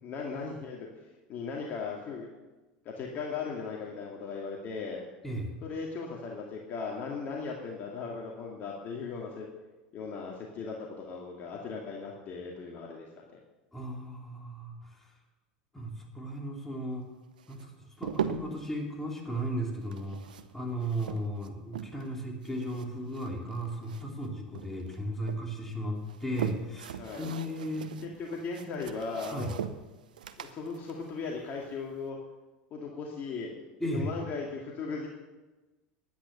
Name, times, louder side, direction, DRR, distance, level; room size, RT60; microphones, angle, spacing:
voice 1, 0.0-0.9 1.3-2.3 2.8-5.0 5.6-9.5 9.9-13.2 27.0-27.3 28.0-29.5 30.4-32.2 32.7-33.5 33.8-35.1, left 4 dB, 45° left, -1 dB, 2.3 m, -37 dB
voice 2, 13.7-15.1 15.7-17.0 17.5-17.7 18.0-27.9 29.3-29.5 33.8-34.1, right 1 dB, 5° left, -1 dB, 3.3 m, -35 dB
sound 1, 17.4-18.7 19.8-22.2 22.4-24.3 24.6-25.4 26.0-32.0, right 8 dB, 90° right, 0.8 m, -40 dB
11.0 x 10.0 x 6.8 m, 1.1 s
hypercardioid pair, 95°, 4 cm